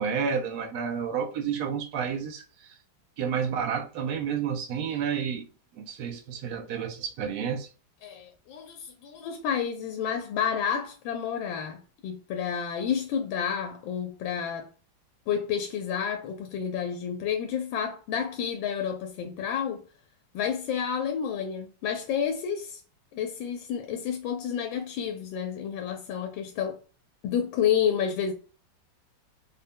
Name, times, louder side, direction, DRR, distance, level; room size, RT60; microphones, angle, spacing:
voice 1, 0.0-2.7 3.2-5.5 5.7-7.7, right 7 dB, 70° right, 0.9 m, -30 dB
voice 2, 8.0-14.7 15.3-19.8 20.3-22.8 23.1-26.8 27.2-28.3, left 8 dB, 90° left, 1.4 m, -30 dB
3.9 x 2.1 x 3.5 m
omnidirectional pair, 2.1 m